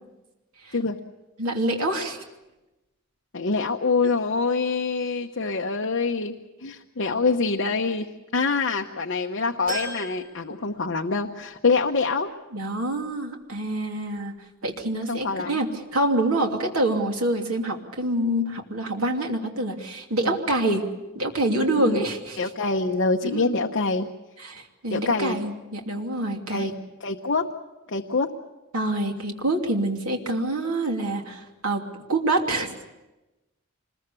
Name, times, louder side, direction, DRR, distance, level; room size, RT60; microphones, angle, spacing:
voice 1, 1.4-2.2 12.5-14.3 14.6-20.8 21.1-22.4 23.2-23.5 24.4-26.7 28.7-31.8 32.1-32.7, right 1 dB, 80° right, 2 dB, 2.8 m, -26 dB
voice 2, 3.3-6.4 6.6-8.1 8.3-12.3 15.1-15.6 20.2-20.4 21.8-22.0 22.4-24.1 24.9-25.4 26.5-26.7 27.0-27.5 27.9-28.3, left 4 dB, 55° left, 1 dB, 1.0 m, -25 dB
sound 1, 9.7-11.3 11.7-11.8 13.0-13.1, right 2 dB, 45° right, 6.1 m, -37 dB
26.0 x 21.0 x 7.0 m, 1.1 s
head